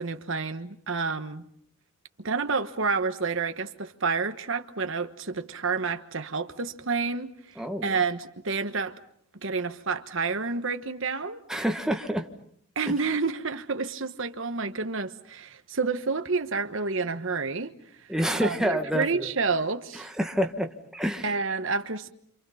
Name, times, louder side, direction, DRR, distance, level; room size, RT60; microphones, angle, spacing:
voice 1, 0.0-1.5 2.2-7.3 7.8-9.0 9.4-11.4 12.7-17.7 18.4-20.1 21.2-22.1, right 4 dB, 65° right, 1.2 m, -29 dB
voice 2, 7.6-8.0 11.5-12.3 18.1-19.3 19.9-21.3, equal, 5° right, 1.5 m, -28 dB
29.5 x 27.5 x 5.7 m
head